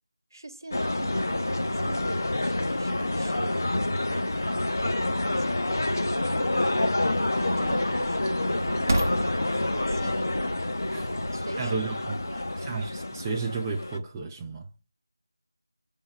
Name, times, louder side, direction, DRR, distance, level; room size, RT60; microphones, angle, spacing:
voice 1, 0.3-4.6 5.1-6.7 7.3-8.4 8.7-10.5 11.0-11.8 12.2-12.6, right 1 dB, 70° right, 1.0 m, -41 dB
sound 1, 0.7-14.0, left 1 dB, 50° left, 0.7 m, -28 dB
sound 2, 2.8-13.8, right 1 dB, 40° right, 0.8 m, -38 dB
voice 2, 11.6-12.1 12.6-14.7, right 4 dB, 10° right, 0.3 m, -32 dB
6.0 x 3.8 x 5.2 m
figure-of-eight pair, 170°, 2 cm